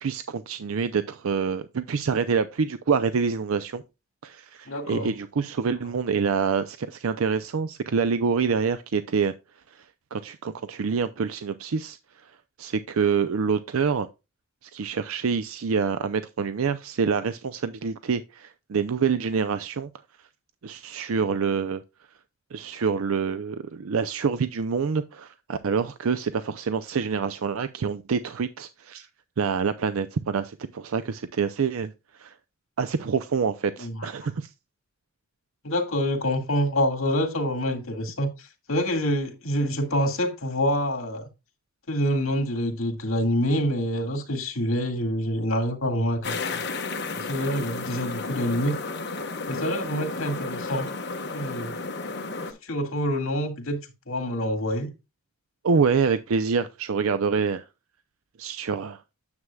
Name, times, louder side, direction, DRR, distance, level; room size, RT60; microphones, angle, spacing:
voice 1, 0.0-3.8 4.2-9.3 9.7-9.9 10.1-12.0 12.6-14.1 14.6-19.9 20.6-21.8 22.5-29.1 29.4-31.9 32.2-32.3 32.8-34.5 55.6-57.6 58.4-59.0, right 5 dB, 80° right, 0.5 m, -26 dB
voice 2, 4.7-5.1 33.8-34.1 35.6-41.2 41.9-46.6 47.1-48.8 49.5-50.9 51.3-51.8 52.6-53.8 54.1-54.9, equal, 75° left, 2.0 m, -26 dB
sound 1, 46.2-52.5, left 3 dB, 50° left, 1.3 m, -32 dB
9.6 x 7.5 x 2.3 m
head